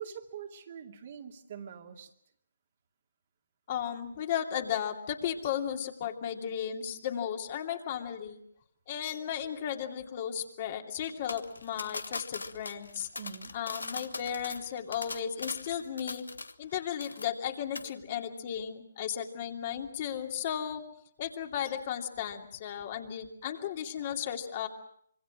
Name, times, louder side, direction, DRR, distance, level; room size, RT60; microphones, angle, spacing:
voice 1, 0.0-2.1 13.2-13.6, right 8 dB, 45° right, 4 dB, 2.5 m, -43 dB
voice 2, 3.7-8.4 8.9-13.1 13.5-16.3 16.6-20.8 21.2-24.7, left 9 dB, 40° left, 4 dB, 2.7 m, -35 dB
sound 1, 11.3-16.7 17.0-17.5 17.8-17.9, left 3 dB, 75° left, 1.3 m, -40 dB
26.0 x 24.0 x 6.2 m, 0.69 s
figure-of-eight pair, 140°, 0 cm